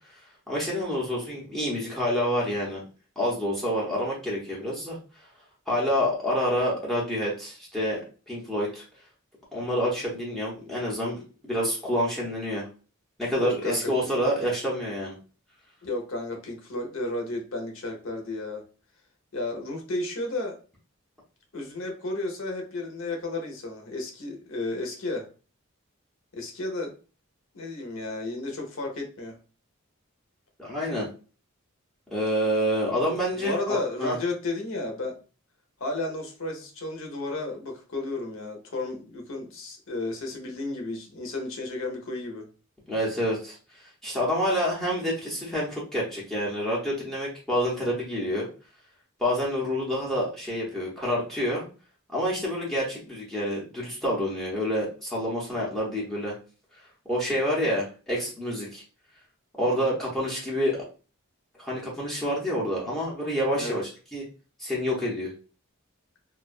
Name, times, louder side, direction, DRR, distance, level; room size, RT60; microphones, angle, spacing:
voice 1, 0.5-2.8 3.2-5.0 5.7-8.8 9.5-12.7 13.2-15.1 30.6-31.1 32.1-34.2 42.9-43.6 44.0-48.5 49.2-51.7 52.1-56.3 57.1-58.8 59.6-60.8 61.6-63.8 64.1-64.2 64.6-65.3, equal, ahead, -4 dB, 0.6 m, -28 dB
voice 2, 13.4-13.9 15.8-18.6 19.3-20.6 21.5-25.3 26.3-26.9 27.5-29.4 33.4-35.2 35.8-42.4 59.7-60.0 63.5-63.8, left 2 dB, 65° left, 1 dB, 0.7 m, -33 dB
2.3 x 2.2 x 2.4 m, 0.36 s
head